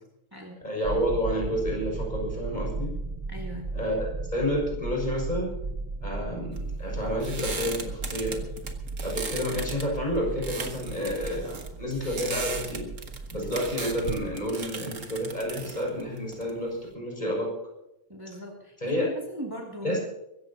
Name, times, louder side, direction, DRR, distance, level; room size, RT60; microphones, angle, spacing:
voice 1, 0.6-2.9 3.7-5.5 6.0-8.5 9.0-12.9 13.3-17.5 18.8-19.1 19.8-20.0, equal, 35° left, -2 dB, 6.5 m, -30 dB
sound 1, 0.8-15.0, right 3 dB, 35° right, 0.5 m, -36 dB
voice 2, 3.3-3.7 18.1-20.0, equal, 15° right, -2 dB, 2.6 m, -39 dB
sound 2, 6.5-16.9, right 4 dB, 80° right, 1.9 m, -38 dB
24.0 x 14.5 x 2.9 m, 0.85 s
omnidirectional pair, 1.3 m